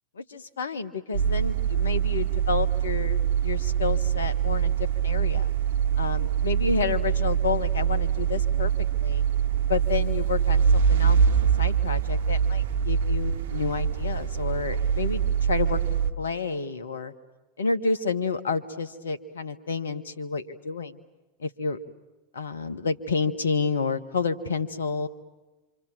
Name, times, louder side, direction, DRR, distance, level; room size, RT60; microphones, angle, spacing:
voice 1, 0.2-4.7 5.0-5.5 6.0-8.7 9.0-9.2 9.7-15.2 15.5-15.8 16.2-17.1 17.6-21.0 21.4-21.8 22.3-25.1, left 5 dB, 80° left, 10 dB, 1.5 m, -30 dB
sound 1, 1.1-16.1, right 8 dB, 70° right, 0.9 m, -24 dB
27.0 x 26.5 x 7.6 m, 1.2 s
hypercardioid pair, 90°, 0 cm